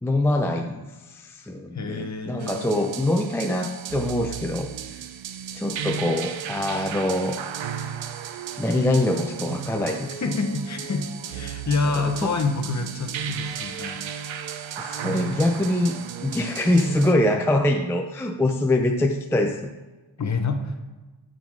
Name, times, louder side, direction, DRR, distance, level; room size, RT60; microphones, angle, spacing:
voice 1, 0.0-5.0 5.5-7.4 8.6-10.2 11.8-12.3 14.8-19.7, left 1 dB, 5° left, 3 dB, 0.3 m, -24 dB
voice 2, 1.7-2.6 10.2-14.0 20.2-20.7, left 4 dB, 35° left, 5 dB, 0.7 m, -27 dB
sound 1, 2.4-17.1, right 8 dB, 65° right, 0.6 m, -34 dB
8.7 x 3.9 x 4.6 m, 1.2 s
wide cardioid pair, 140°, 49 cm